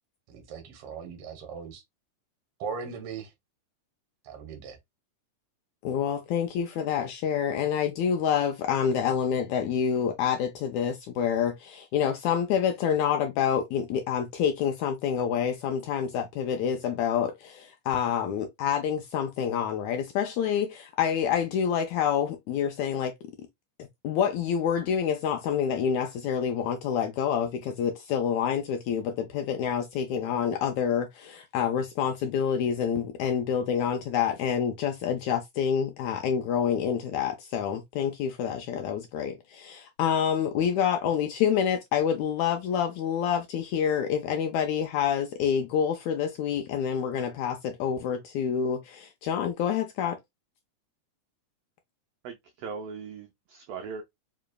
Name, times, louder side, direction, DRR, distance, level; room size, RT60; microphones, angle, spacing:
voice 1, 0.3-1.8 2.6-3.3 4.2-4.8, right 6 dB, 60° right, 1.7 m, -38 dB
voice 2, 5.8-23.5 24.0-50.2, left 8 dB, 80° left, 1.8 m, -27 dB
voice 3, 52.2-54.0, right 5 dB, 90° right, 1.4 m, -39 dB
5.0 x 3.1 x 2.3 m
omnidirectional pair, 3.7 m